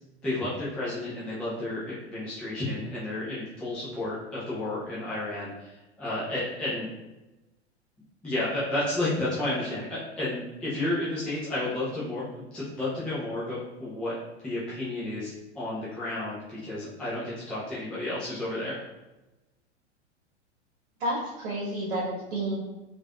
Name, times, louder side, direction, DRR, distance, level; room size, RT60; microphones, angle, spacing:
voice 1, 0.2-6.9 8.2-14.1 14.4-18.8, left 1 dB, 5° left, -9 dB, 0.3 m, -32 dB
voice 2, 21.0-22.6, right 1 dB, 60° right, -5 dB, 0.9 m, -30 dB
3.1 x 2.5 x 2.3 m, 1.0 s
figure-of-eight pair, 95°, 34 cm